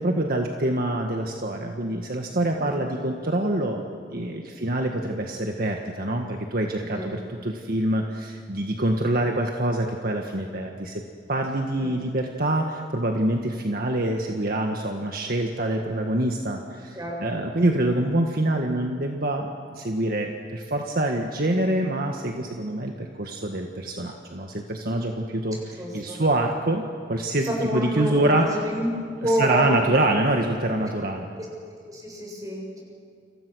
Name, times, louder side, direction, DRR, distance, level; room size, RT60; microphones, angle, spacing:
voice 1, 0.0-3.8 4.1-11.0 11.3-28.6 29.2-31.3, right 1 dB, 55° right, 2 dB, 1.7 m, -25 dB
voice 2, 25.8-26.2 27.5-28.9 29.2-29.7 31.4-31.5 31.9-32.8, equal, 20° right, -1 dB, 7.8 m, -28 dB
29.5 x 27.0 x 6.4 m, 2.3 s
head